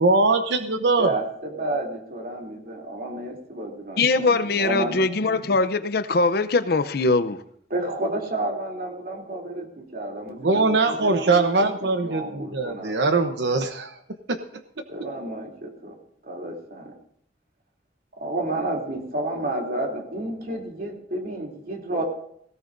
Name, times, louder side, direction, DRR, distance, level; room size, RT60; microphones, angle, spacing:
voice 1, 0.0-1.1 10.4-14.0 14.3-14.4, right 3 dB, 75° right, 6 dB, 0.9 m, -21 dB
voice 2, 1.0-5.0 7.7-11.7 12.0-12.9 14.9-15.9 16.2-16.9 18.2-22.0, right 2 dB, 55° right, 0 dB, 3.0 m, -31 dB
voice 3, 4.0-7.4, left 3 dB, 60° left, 13 dB, 0.7 m, -22 dB
18.0 x 17.5 x 2.7 m, 0.67 s
head